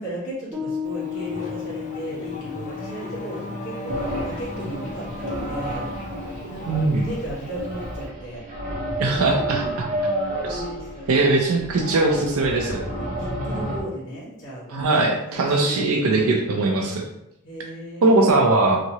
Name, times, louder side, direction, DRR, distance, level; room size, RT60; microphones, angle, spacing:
voice 1, 0.0-5.8 6.5-8.4 9.1-9.5 10.4-11.1 12.9-16.1 17.4-18.4, right 1 dB, 60° left, -8 dB, 1.1 m, -35 dB
Piano, 0.5-7.3, left 7 dB, 10° right, 0.5 m, -36 dB
Race car auto racing / Accelerating revving vroom, 0.8-8.1, left 1 dB, 35° left, 0.5 m, -37 dB
sound 1, 3.9-13.8, right 1 dB, 35° right, 0.9 m, -31 dB
voice 2, 6.7-7.0 9.0-9.6 10.4-10.6 11.1-12.8 14.7-17.1 18.0-18.8, right 2 dB, 85° right, 0 dB, 0.4 m, -20 dB
2.8 x 2.7 x 2.8 m, 0.84 s
head